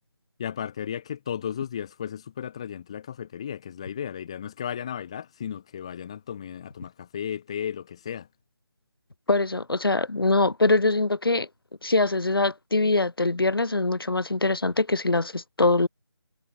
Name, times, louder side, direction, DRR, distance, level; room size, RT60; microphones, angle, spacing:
voice 1, 0.4-8.3, left 8 dB, 15° left, 2.6 m, -34 dB
voice 2, 9.3-11.5 11.8-15.9, left 2 dB, 60° left, 5.6 m, -23 dB
figure-of-eight pair, 180°, 13 cm